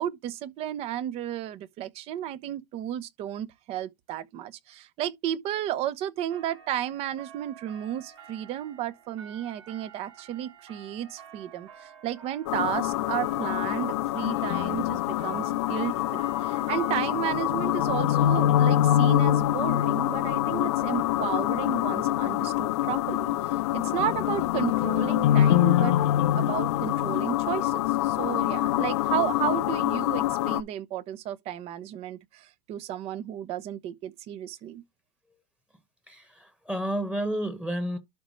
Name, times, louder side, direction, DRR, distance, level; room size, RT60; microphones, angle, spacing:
voice 1, 0.0-26.0 26.3-34.8, right 11 dB, 40° right, 0.9 m, -33 dB
sound 1, 6.3-17.0, right 7 dB, 85° right, 2.6 m, -50 dB
sound 2, 12.5-30.6, left 13 dB, 70° left, 0.8 m, -25 dB
voice 2, 36.1-38.0, right 1 dB, 5° right, 1.4 m, -31 dB
12.0 x 5.0 x 3.2 m
hypercardioid pair, 125°, 15 cm